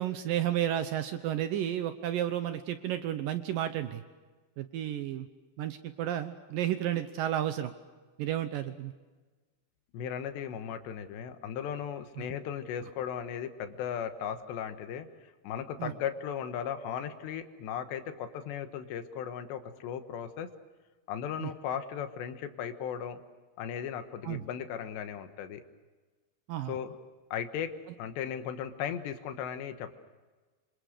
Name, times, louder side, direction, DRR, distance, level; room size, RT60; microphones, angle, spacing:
voice 1, 0.0-4.0 4.6-5.3 5.6-7.7 8.2-8.9 12.2-12.3 15.8-15.9 21.4-21.5 24.2-24.5 26.5-26.7, right 11 dB, 75° right, 10 dB, 2.1 m, -32 dB
voice 2, 9.9-15.1 15.4-20.5 21.1-23.2 23.6-25.6 26.7-27.0 27.3-27.7 28.0-30.0, left 8 dB, 80° left, 8 dB, 3.5 m, -36 dB
26.5 x 26.0 x 6.6 m, 1.3 s
omnidirectional pair, 5.0 m